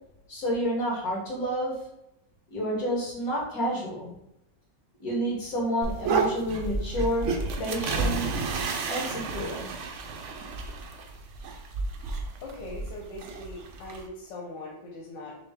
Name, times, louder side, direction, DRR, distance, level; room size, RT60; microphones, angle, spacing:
voice 1, 0.3-1.8 2.5-4.1 5.0-7.3 7.6-8.3 8.9-9.7, equal, 55° left, -4 dB, 1.9 m, -29 dB
sound 1, 5.8-14.1, right 4 dB, 85° right, 0.6 m, -31 dB
voice 2, 12.4-15.4, left 2 dB, 85° left, -2 dB, 1.5 m, -41 dB
5.9 x 2.1 x 3.5 m, 0.84 s
omnidirectional pair, 1.9 m